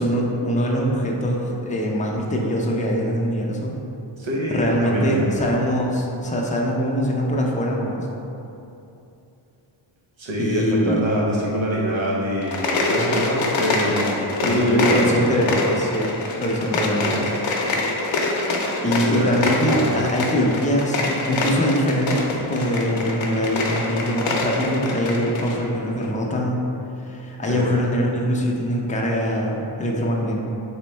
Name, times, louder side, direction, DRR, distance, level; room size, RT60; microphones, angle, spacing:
voice 1, 0.0-3.8 4.5-8.1 10.4-11.0 14.4-16.1 16.4-17.2 18.8-26.6 27.0-30.4, equal, 15° left, -2 dB, 0.4 m, -23 dB
voice 2, 4.2-5.5 10.2-15.8 17.0-17.2 19.0-20.4 27.5-27.7, equal, 80° right, -5 dB, 1.0 m, -26 dB
sound 1, 12.4-25.6, left 2 dB, 85° left, 0.7 m, -25 dB
3.5 x 3.1 x 4.2 m, 2.8 s
wide cardioid pair, 150°, 46 cm